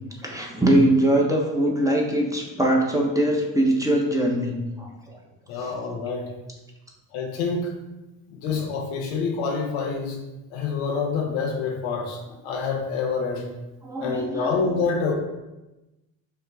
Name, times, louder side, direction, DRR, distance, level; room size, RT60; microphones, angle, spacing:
voice 1, 0.2-5.2 5.6-5.7 13.8-14.5, right 1 dB, 5° right, -2 dB, 1.1 m, -22 dB
voice 2, 5.5-6.3 7.1-7.7 8.3-10.2 10.5-13.5 14.0-15.1, left 4 dB, 80° left, 1 dB, 0.9 m, -27 dB
5.8 x 2.4 x 3.5 m, 1.0 s
supercardioid pair, 60°, 48 cm